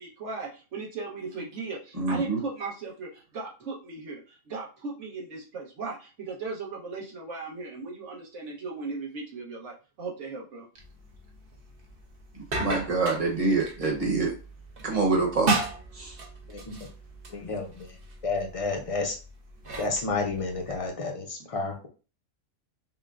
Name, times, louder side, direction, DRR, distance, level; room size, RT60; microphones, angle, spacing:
voice 1, 0.0-10.7, right 4 dB, 70° right, -3 dB, 1.4 m, -37 dB
voice 2, 2.0-2.4 12.6-14.3 14.8-15.6 15.9-16.2, right 3 dB, 30° right, 0 dB, 1.1 m, -26 dB
sound 1, 10.8-20.9, right 3 dB, 50° right, 0.9 m, -36 dB
voice 3, 17.3-18.0 18.2-19.2 19.8-21.9, left 3 dB, 35° left, 1 dB, 0.6 m, -31 dB
5.6 x 2.2 x 2.5 m, 0.34 s
omnidirectional pair, 1.3 m